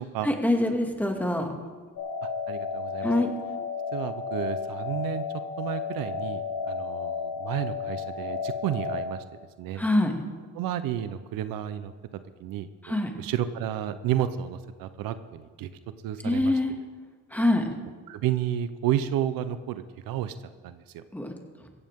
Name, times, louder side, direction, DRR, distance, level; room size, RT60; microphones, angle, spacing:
voice 1, 0.2-1.5 3.0-3.3 9.8-10.1 12.8-13.1 16.2-16.7 17.3-17.6 21.1-21.3, left 1 dB, 5° left, 2 dB, 2.3 m, -24 dB
sound 1, 2.0-9.0, left 5 dB, 75° left, 3.0 m, -33 dB
voice 2, 2.2-3.1 3.9-5.2 5.6-9.2 9.6-9.8 10.5-11.9 12.4-15.7 16.0-16.5 18.1-20.3 20.6-21.0, right 11 dB, 75° right, 12 dB, 0.9 m, -31 dB
16.0 x 15.0 x 3.7 m, 1.4 s
cardioid pair, 95°, 35 cm